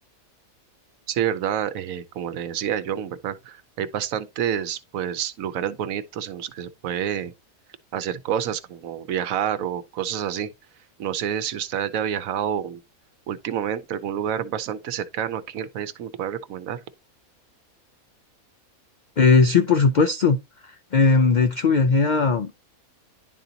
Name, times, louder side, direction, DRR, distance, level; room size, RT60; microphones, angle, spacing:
voice 1, 1.1-7.3 7.9-10.5 11.0-12.8 13.3-16.8, right 9 dB, 75° right, 1.1 m, -28 dB
voice 2, 19.2-20.4 20.6-22.5, left 4 dB, 90° left, 0.4 m, -18 dB
10.5 x 3.9 x 2.8 m
omnidirectional pair, 1.5 m